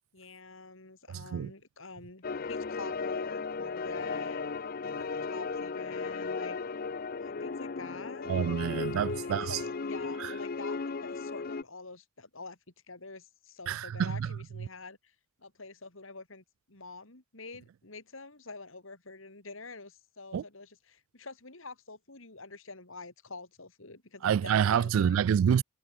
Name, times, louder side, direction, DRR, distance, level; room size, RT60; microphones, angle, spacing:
voice 1, 0.1-4.5 5.0-6.6 7.2-8.3 9.1-12.6 12.9-15.1 15.4-25.2, left 3 dB, 65° left, 3.3 m, -46 dB
voice 2, 1.1-1.5 8.3-9.6 10.2-10.3 13.7-14.4 20.3-20.4 24.2-25.6, right 8 dB, 70° right, 0.3 m, -27 dB
sound 1, 2.2-11.6, left 4 dB, 45° left, 0.6 m, -35 dB
head